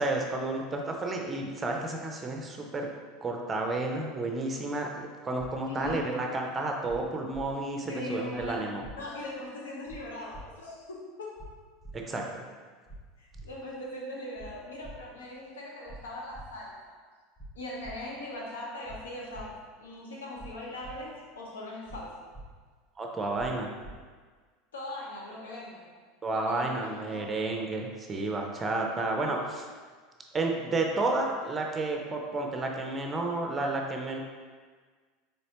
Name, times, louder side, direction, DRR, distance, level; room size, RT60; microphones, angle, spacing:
voice 1, 0.0-2.9 3.2-8.8 11.9-12.4 23.0-23.7 26.2-29.7 30.3-34.2, right 2 dB, 20° right, 1 dB, 0.6 m, -31 dB
voice 2, 5.7-6.1 7.9-11.6 13.2-16.9 17.5-22.2 24.7-25.9 26.3-27.4, left 1 dB, 70° left, -3 dB, 0.6 m, -40 dB
sound 1, 5.8-5.9 6.9-7.0 7.3-7.4 8.4-8.5 8.8-8.9 9.9-10.0 10.3-10.4 11.4-11.5 11.8-12.0 12.9-13.0 13.3-13.5 14.4-14.5 14.8-14.9 15.9-16.0 16.3-16.5 17.4-17.5 17.8-17.9 18.9-19.0 19.3-19.4 20.4-20.5 20.8-20.9 21.9-22.0 22.3-22.4 23.4-23.5 23.8-23.9, right 2 dB, 25° left, 0.6 m, -45 dB
4.1 x 3.5 x 2.8 m, 1.5 s
figure-of-eight pair, 75°, 0 cm